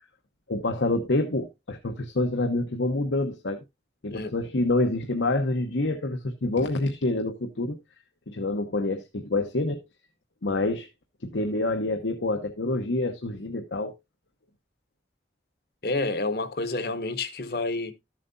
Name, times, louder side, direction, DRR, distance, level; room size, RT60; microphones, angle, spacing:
voice 1, 0.5-3.6 4.0-7.8 8.3-9.8 10.4-10.9 11.2-13.9, left 2 dB, 85° left, 1.0 m, -27 dB
voice 2, 15.8-17.9, left 2 dB, 55° left, 1.0 m, -29 dB
13.5 x 7.4 x 2.6 m
head